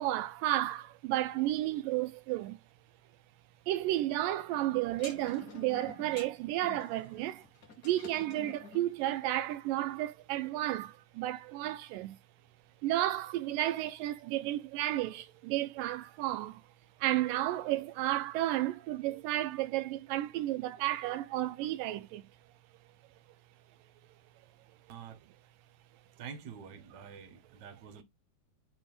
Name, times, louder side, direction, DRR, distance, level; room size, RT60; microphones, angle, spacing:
voice 1, 0.0-2.6 3.7-7.5 7.8-12.2 12.8-16.6 17.0-22.2, right 14 dB, 80° right, 2.2 m, -32 dB
sound 1, 4.9-8.9, left 4 dB, 40° left, 1.5 m, -50 dB
voice 2, 24.9-25.2 26.2-28.0, right 7 dB, 45° right, 1.4 m, -47 dB
9.2 x 3.1 x 3.5 m
omnidirectional pair, 4.0 m